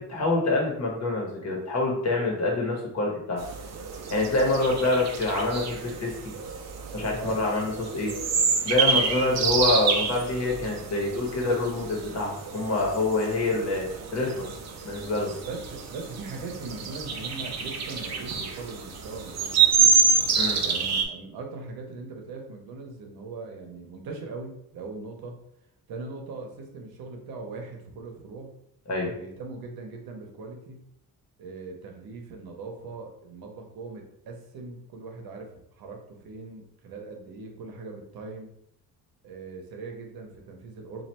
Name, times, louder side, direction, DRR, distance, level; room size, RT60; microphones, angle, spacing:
voice 1, 0.0-3.4 4.1-6.1 6.9-8.1 8.6-14.5 14.8-15.3 20.4-20.6 28.9-29.1, left 2 dB, 45° left, -1 dB, 1.1 m, -26 dB
sound 1, 3.4-21.0, right 5 dB, 45° right, 0.6 m, -28 dB
voice 2, 7.1-7.6 15.5-20.0 20.6-25.4 25.9-28.5 29.2-30.8 31.4-38.5 39.2-41.0, right 3 dB, 75° right, 2 dB, 0.9 m, -40 dB
3.1 x 2.5 x 4.3 m, 0.75 s
cardioid pair, 160°, 37 cm